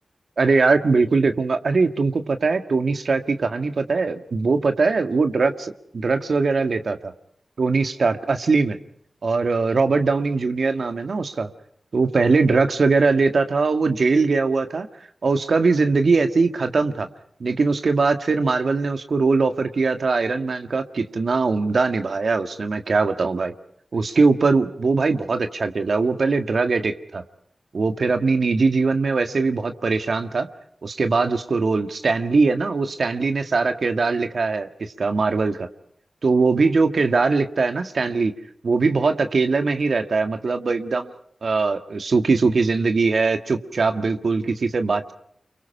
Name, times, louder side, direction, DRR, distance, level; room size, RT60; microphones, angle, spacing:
voice 1, 0.4-7.1 7.6-8.8 9.2-11.5 11.9-14.9 15.2-17.1 17.4-23.5 23.9-27.2 27.7-30.5 30.8-35.7 36.2-38.3 38.6-41.1 41.4-45.1, right 4 dB, 70° right, 7 dB, 1.8 m, -21 dB
30.0 x 24.0 x 5.7 m, 0.69 s
cardioid pair, 40°, 0 cm